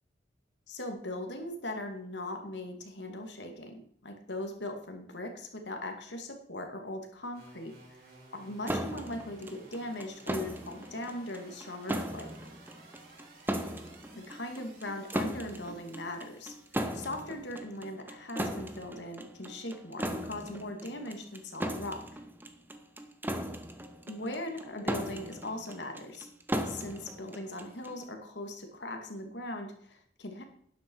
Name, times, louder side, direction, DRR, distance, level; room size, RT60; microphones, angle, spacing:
voice 1, 0.7-7.7 8.3-12.3 14.1-16.5 16.9-22.0 24.1-26.3 26.6-30.4, left 1 dB, 75° left, 4 dB, 2.3 m, -39 dB
sound 1, 7.3-17.6, right 2 dB, 55° right, 4.7 m, -56 dB
sound 2, 8.7-28.0, equal, 10° right, 0.9 m, -38 dB
12.0 x 10.0 x 4.7 m, 0.63 s
head